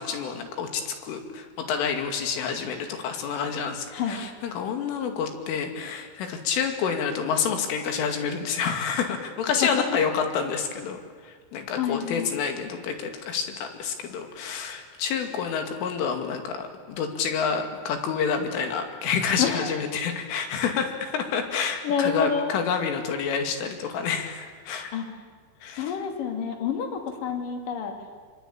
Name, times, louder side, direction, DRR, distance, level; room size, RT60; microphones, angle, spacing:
voice 1, 0.0-24.9 25.6-25.9, left 6 dB, 80° left, 5 dB, 4.9 m, -28 dB
voice 2, 11.8-12.3 19.4-19.7 21.8-22.6 24.9-25.1 25.8-27.9, left 7 dB, 50° left, 4 dB, 3.9 m, -28 dB
25.0 x 25.0 x 8.8 m, 1.5 s
omnidirectional pair, 5.6 m